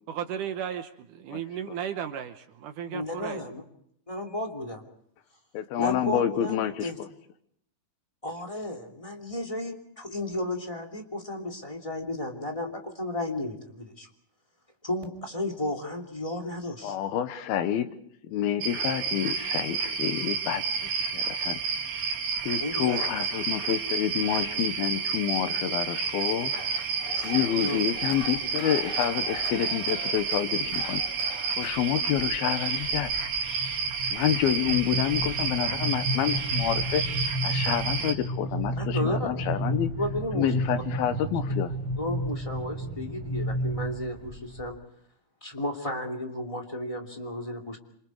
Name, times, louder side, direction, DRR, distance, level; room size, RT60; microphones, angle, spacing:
voice 1, 0.1-3.5, right 9 dB, 70° right, 8 dB, 2.3 m, -35 dB
voice 2, 2.9-3.6 4.1-4.8 5.8-7.0 8.2-14.1 14.8-17.0 22.6-23.0 27.1-27.3 27.6-27.8 34.5-34.6 38.8-39.3 40.0-40.5 42.0-44.8 45.4-47.8, left 1 dB, 10° left, 1 dB, 2.3 m, -33 dB
voice 3, 5.5-7.1 16.8-17.9 18.2-20.6 21.1-21.6 22.4-26.5 27.2-31.0 31.6-33.1 34.1-37.0 37.4-39.9 40.3-41.7, left 10 dB, 80° left, 10 dB, 3.0 m, -28 dB
sound 1, 18.6-38.1, right 5 dB, 85° right, 4.5 m, -30 dB
sound 2, 26.5-31.7, left 1 dB, 30° left, 3.3 m, -42 dB
sound 3, 27.9-28.5 29.0-29.5 30.2-31.0 31.4-31.8 32.1-44.7, equal, 35° right, 4.4 m, -32 dB
27.5 x 27.0 x 4.8 m, 0.69 s
omnidirectional pair, 4.3 m